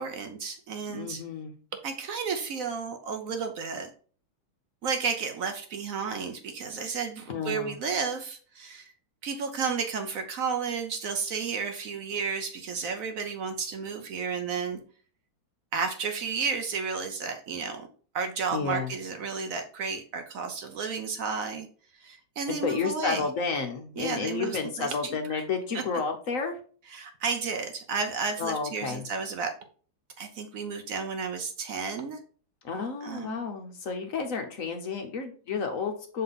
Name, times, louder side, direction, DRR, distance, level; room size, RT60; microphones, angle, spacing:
voice 1, 0.0-1.2 1.8-3.9 4.8-8.9 9.2-14.8 15.7-17.9 18.1-21.7 21.9-23.3 24.0-25.4 25.7-25.8 26.9-29.6 30.2-32.2 33.0-33.4, right 5 dB, 75° right, 6 dB, 0.7 m, -32 dB
voice 2, 0.9-1.5 7.3-7.8 18.5-18.9 22.5-26.6 28.4-29.0 32.6-36.2, left 5 dB, 55° left, 5 dB, 0.9 m, -31 dB
6.6 x 3.8 x 3.9 m, 0.42 s
omnidirectional pair, 2.2 m